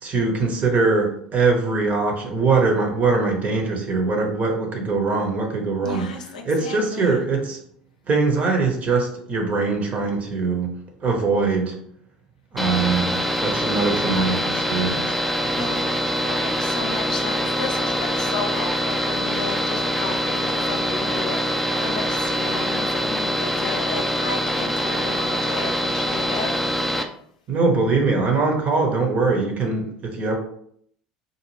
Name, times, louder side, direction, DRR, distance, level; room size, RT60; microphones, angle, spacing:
voice 1, 0.0-7.6 8.1-11.8 12.5-15.2 15.6-15.7 27.5-30.4, right 4 dB, 35° right, 3 dB, 0.9 m, -22 dB
voice 2, 5.8-7.2 15.5-26.5, left 4 dB, 75° left, 3 dB, 0.6 m, -33 dB
sound 1, 12.6-27.0, equal, ahead, 0.5 m, -24 dB
3.9 x 2.4 x 3.2 m, 0.67 s
figure-of-eight pair, 70°, 4 cm